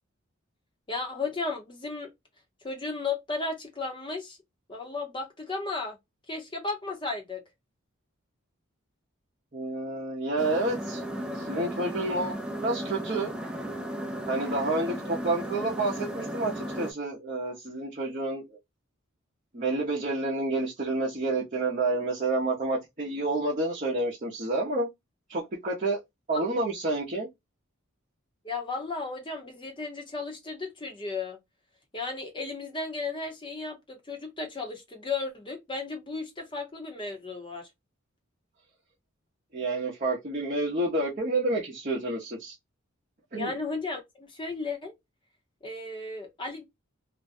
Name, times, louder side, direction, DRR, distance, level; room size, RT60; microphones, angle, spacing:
voice 1, 0.9-2.1 2.6-4.4 4.7-6.0 6.3-7.4 26.3-26.4 28.4-31.4 31.9-37.7 43.3-44.9 45.6-46.7, left 3 dB, 25° left, 0.8 m, -34 dB
voice 2, 9.5-11.0 11.3-12.3 12.6-13.3 14.3-18.6 19.5-24.9 25.3-26.0 26.3-27.3 39.5-42.5 43.3-43.5, right 2 dB, 40° right, 0.7 m, -29 dB
sound 1, 10.4-16.9, right 1 dB, 5° right, 0.3 m, -35 dB
2.6 x 2.2 x 2.5 m
head